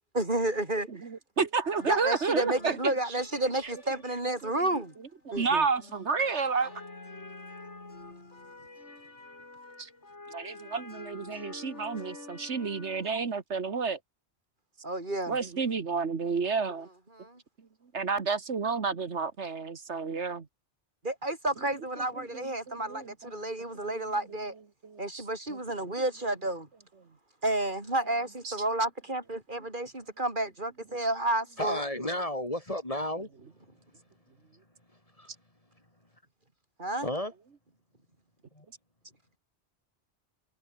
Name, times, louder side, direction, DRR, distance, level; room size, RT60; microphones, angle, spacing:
voice 1, 0.1-0.9 1.8-4.9 5.3-5.7 14.8-15.4 17.1-17.4 21.0-24.5 25.0-26.7 27.4-31.8 36.8-37.1, right 1 dB, 45° right, 4.2 m, -31 dB
voice 2, 1.0-2.8 4.4-4.5 5.3-6.7 9.8-9.9 10.3-14.0 15.3-16.9 17.9-20.5 22.3-23.5 23.8-24.0 24.8-25.2 25.5-25.6 28.4-28.5, right 5 dB, 75° right, 2.0 m, -31 dB
sound 1, 1.6-13.1, left 2 dB, 85° left, 4.2 m, -48 dB
voice 3, 31.6-33.3 35.2-35.3 37.0-37.3 38.5-38.7, left 1 dB, 30° left, 4.3 m, -32 dB
omnidirectional pair, 1.2 m